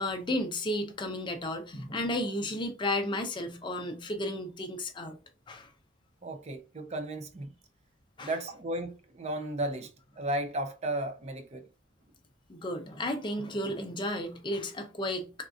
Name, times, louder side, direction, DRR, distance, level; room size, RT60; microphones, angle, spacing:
voice 1, 0.0-5.1 5.5-5.7 8.2-8.3 12.5-15.3, left 1 dB, 25° left, 0.5 m, -33 dB
voice 2, 6.2-7.5 8.2-9.9 10.2-11.7, right 1 dB, 35° right, 0.5 m, -34 dB
3.6 x 2.4 x 2.4 m
head